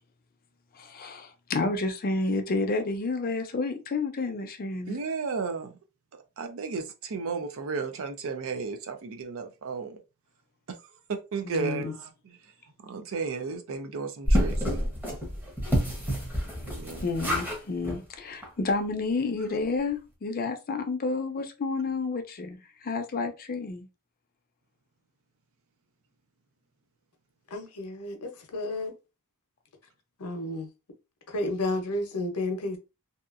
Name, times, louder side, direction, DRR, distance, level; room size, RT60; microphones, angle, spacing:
voice 1, 0.7-5.0 11.4-11.9 17.0-23.9, left 3 dB, 40° left, 0.5 m, -30 dB
voice 2, 4.9-5.8 6.4-10.0 10.7-12.4 12.8-14.9 16.7-17.1, right 4 dB, 65° right, 0.5 m, -34 dB
sound 1, 14.3-17.6 17.8-18.0 18.4-18.5 18.8-18.9, equal, 10° right, 0.8 m, -28 dB
voice 3, 27.5-28.9 30.2-30.7 31.3-32.8, left 2 dB, 85° left, 0.7 m, -31 dB
2.7 x 2.3 x 2.5 m
head